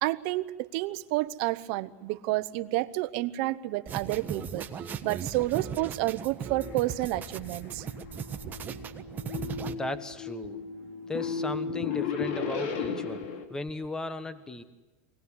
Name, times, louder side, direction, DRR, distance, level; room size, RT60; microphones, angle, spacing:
voice 1, 0.0-4.7 5.0-7.8, right 17 dB, 60° right, 12 dB, 1.0 m, -30 dB
sound 1, 3.9-9.7, right 7 dB, 25° right, 1.3 m, -38 dB
sound 2, 6.6-13.5, left 6 dB, 70° left, 3.0 m, -35 dB
voice 2, 9.7-10.6 11.1-13.2 13.5-14.6, left 2 dB, 10° left, 12 dB, 1.1 m, -36 dB
25.0 x 18.5 x 9.8 m, 1.2 s
supercardioid pair, 135°, 7 cm